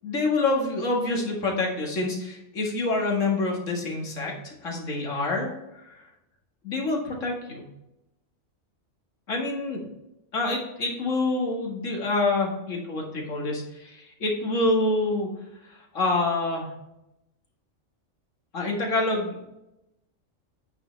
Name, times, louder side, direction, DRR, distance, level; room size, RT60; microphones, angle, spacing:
voice 1, 0.0-6.1 6.6-7.6 9.3-9.8 10.3-15.3 15.6-16.7 18.5-19.6, left 2 dB, 80° left, -1 dB, 2.3 m, -27 dB
9.1 x 6.9 x 3.4 m, 0.90 s
omnidirectional pair, 1.3 m